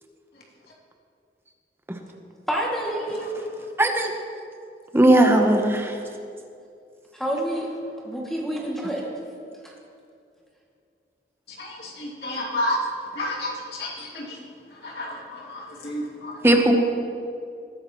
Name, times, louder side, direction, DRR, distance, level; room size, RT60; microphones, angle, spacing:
voice 1, 2.5-3.3 7.1-7.7 8.0-9.2 9.6-9.7, right 1 dB, ahead, -4 dB, 2.2 m, -28 dB
voice 2, 3.8-4.1 4.9-5.9 16.4-16.7, right 1 dB, 15° right, 3 dB, 0.9 m, -17 dB
voice 3, 11.5-12.8 13.1-14.4 14.7-16.6, left 1 dB, 70° left, -3 dB, 2.5 m, -31 dB
20.0 x 10.5 x 3.0 m, 2.5 s
head